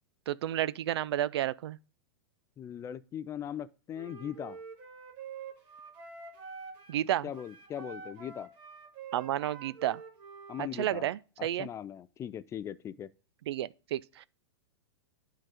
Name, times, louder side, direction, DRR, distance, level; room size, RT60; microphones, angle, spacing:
voice 1, 0.3-1.8 6.9-7.3 9.1-10.0 10.6-11.7 13.5-14.3, right 12 dB, 70° right, 0.4 m, -31 dB
voice 2, 2.6-4.6 7.2-8.5 10.5-11.1 11.4-13.1, left 9 dB, 20° left, 0.3 m, -39 dB
Wind instrument woodwind instrument, 3.9-7.0 7.3-10.7, right 5 dB, 35° right, 2.1 m, -47 dB
9.6 x 3.9 x 4.9 m
hypercardioid pair, 120°, 14 cm